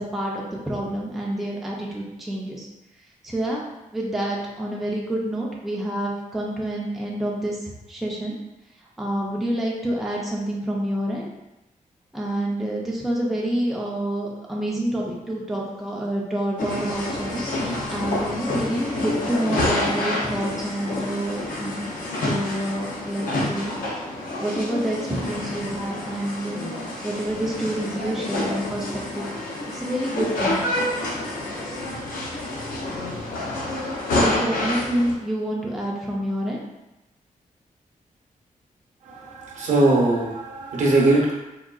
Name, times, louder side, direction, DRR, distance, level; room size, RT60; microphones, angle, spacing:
voice 1, 0.0-2.7 3.2-3.6 3.9-8.4 9.0-11.3 12.1-21.7 22.2-23.7 24.4-26.6 27.0-29.3 29.7-30.7 34.2-36.6, right 1 dB, ahead, -3 dB, 0.4 m, -28 dB
sound 1, 16.6-35.1, left 1 dB, 80° left, 0.5 m, -28 dB
voice 2, 39.1-41.3, right 2 dB, 60° right, -3 dB, 0.7 m, -20 dB
3.6 x 2.2 x 2.3 m, 0.97 s
wide cardioid pair, 180°, 14 cm